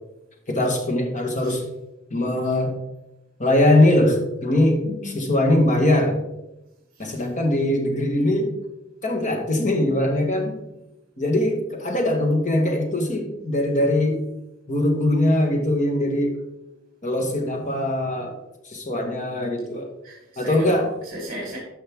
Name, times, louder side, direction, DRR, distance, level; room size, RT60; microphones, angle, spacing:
voice 1, 0.5-1.6 2.1-2.7 3.4-4.8 5.1-6.2 7.0-8.5 9.0-10.5 11.2-14.2 14.7-16.4 17.0-18.3 18.6-19.9 20.4-20.9, left 1 dB, 40° left, 3 dB, 1.5 m, -21 dB
voice 2, 4.8-5.3 6.9-7.3 20.0-21.6, equal, 45° right, -4 dB, 3.0 m, -36 dB
13.0 x 5.4 x 3.6 m, 0.92 s
head